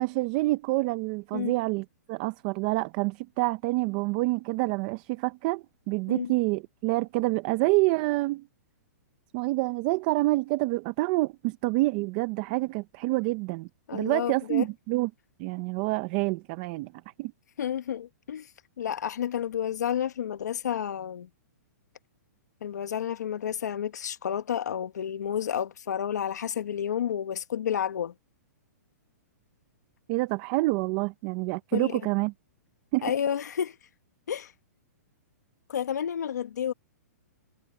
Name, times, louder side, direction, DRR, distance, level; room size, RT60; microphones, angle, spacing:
voice 1, 0.0-8.5 9.3-15.1 15.4-16.9 17.2-17.3 30.1-32.3 32.9-33.1, right 22 dB, 30° right, 0.6 m, -27 dB
voice 2, 13.9-14.6 17.6-18.5 18.8-21.3 22.6-28.1 31.7-31.9 33.0-33.8 34.3-34.5 35.7-36.7, left 9 dB, 75° left, 1.3 m, -30 dB
hypercardioid pair, 165°, 9 cm